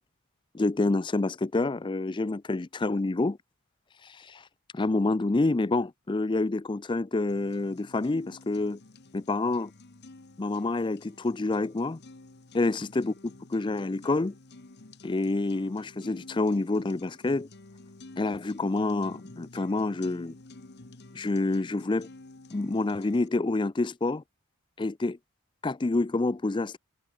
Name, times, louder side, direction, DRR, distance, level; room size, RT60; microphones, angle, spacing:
voice 1, 0.5-3.4 4.0-4.4 4.7-8.8 9.1-9.7 10.4-12.0 12.5-13.1 13.5-14.3 15.0-17.5 18.2-20.3 21.1-22.1 22.5-24.2 24.8-25.2 25.6-26.8, left 2 dB, 20° left, 0.4 m, -28 dB
sound 1, 7.3-23.3, left 2 dB, 50° left, 1.2 m, -50 dB
head